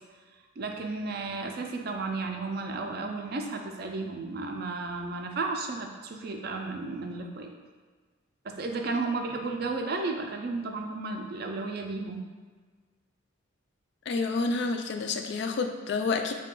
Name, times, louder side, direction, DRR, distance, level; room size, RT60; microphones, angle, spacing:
voice 1, 0.6-7.5 8.4-12.3, right 3 dB, 50° right, 3 dB, 0.4 m, -33 dB
voice 2, 14.1-16.3, left 4 dB, 55° left, 6 dB, 0.3 m, -29 dB
4.7 x 2.2 x 3.7 m, 1.5 s
head